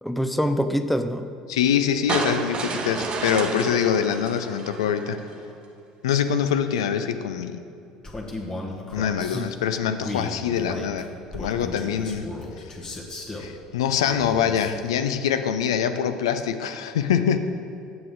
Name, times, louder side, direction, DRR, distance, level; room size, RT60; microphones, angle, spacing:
voice 1, 0.0-1.3 9.3-9.5, equal, ahead, 9 dB, 0.5 m, -25 dB
voice 2, 1.5-5.2 6.0-7.6 8.9-11.1 11.3-12.3 12.6-12.7 13.4-17.4, left 8 dB, 75° left, 9 dB, 0.4 m, -24 dB
sound 1, 2.1-5.3, right 4 dB, 35° right, 0.8 m, -30 dB
Male speech man speaking, 8.0-9.4 10.0-13.5 14.0-14.8, left 2 dB, 25° left, 1.3 m, -35 dB
7.7 x 7.5 x 3.8 m, 2.5 s
figure-of-eight pair, 65°, 3 cm